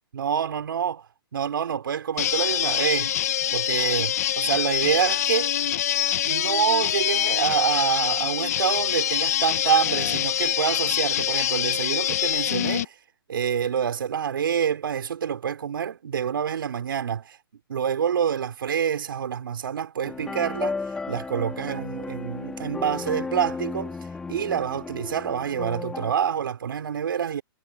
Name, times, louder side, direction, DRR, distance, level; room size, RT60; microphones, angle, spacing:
voice 1, 0.1-1.0 1.3-3.1 3.5-5.6 6.3-12.9 13.3-17.4 17.7-20.8 21.1-24.0 24.3-27.4, right 8 dB, 60° right, 5.8 m, -27 dB
sound 1, 2.2-12.9, left 11 dB, 40° left, 1.9 m, -25 dB
sound 2, 20.0-26.1, left 4 dB, 5° left, 4.7 m, -34 dB
hypercardioid pair, 180°, 13 cm